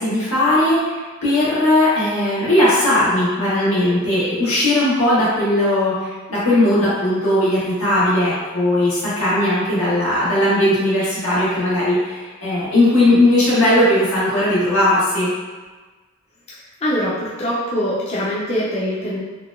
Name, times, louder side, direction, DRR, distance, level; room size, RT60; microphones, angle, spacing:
voice 1, 0.0-15.3, left 1 dB, 85° left, -10 dB, 1.3 m, -18 dB
voice 2, 16.8-19.2, equal, 30° left, -8 dB, 0.4 m, -23 dB
3.8 x 2.1 x 2.2 m, 1.3 s
head